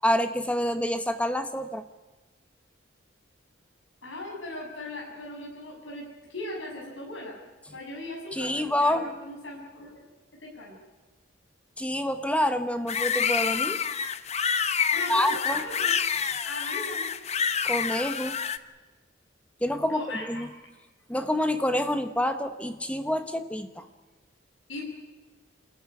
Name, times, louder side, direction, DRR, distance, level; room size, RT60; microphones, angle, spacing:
voice 1, 0.0-1.8 8.3-9.1 11.8-13.8 15.1-15.6 17.6-18.4 19.6-20.5 21.1-23.9, left 1 dB, 5° left, 8 dB, 1.0 m, -27 dB
voice 2, 4.0-7.3 7.7-10.0 10.4-10.7 14.9-15.9 16.4-17.1 19.9-20.5 24.7-24.8, left 2 dB, 75° left, -2 dB, 6.6 m, -38 dB
sound 1, 12.9-18.6, left 7 dB, 35° left, 0.8 m, -27 dB
28.0 x 14.5 x 9.8 m, 1.2 s
head